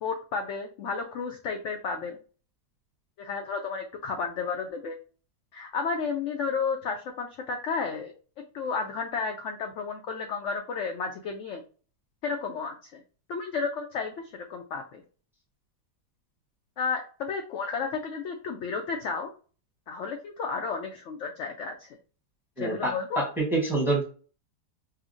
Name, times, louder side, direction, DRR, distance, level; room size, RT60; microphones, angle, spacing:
voice 1, 0.0-2.2 3.2-5.0 5.5-8.1 8.4-11.6 12.2-13.0 13.3-15.0 16.8-19.3 19.9-21.9 22.6-23.2, left 5 dB, 75° left, 3 dB, 0.7 m, -32 dB
voice 2, 22.6-24.0, right 2 dB, ahead, -1 dB, 0.9 m, -27 dB
5.4 x 2.1 x 2.6 m, 0.39 s
omnidirectional pair, 1.7 m